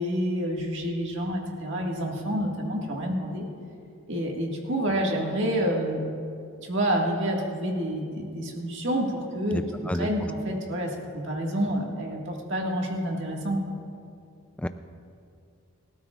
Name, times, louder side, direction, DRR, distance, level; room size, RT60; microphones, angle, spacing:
voice 1, 0.0-3.4 4.1-6.0 6.6-13.8, equal, 55° right, 0 dB, 1.8 m, -28 dB
voice 2, 9.5-10.1 14.6-14.7, left 1 dB, 5° left, 9 dB, 0.3 m, -30 dB
25.5 x 13.0 x 2.4 m, 2.5 s
head